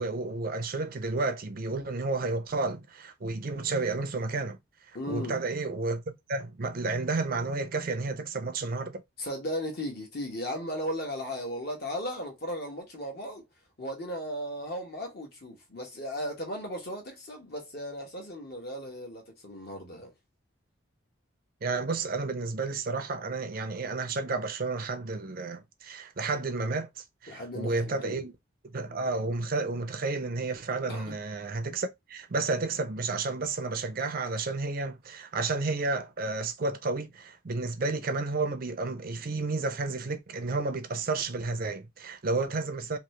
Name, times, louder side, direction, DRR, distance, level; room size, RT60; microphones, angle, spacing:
voice 1, 0.0-4.6 5.1-6.0 6.3-9.0 21.6-28.3 28.7-43.0, right 3 dB, 45° right, 0.5 m, -31 dB
voice 2, 4.9-5.4 9.2-13.4 13.8-20.1 27.3-28.2 30.9-31.2, equal, 50° left, 1.1 m, -36 dB
2.9 x 2.8 x 3.1 m
head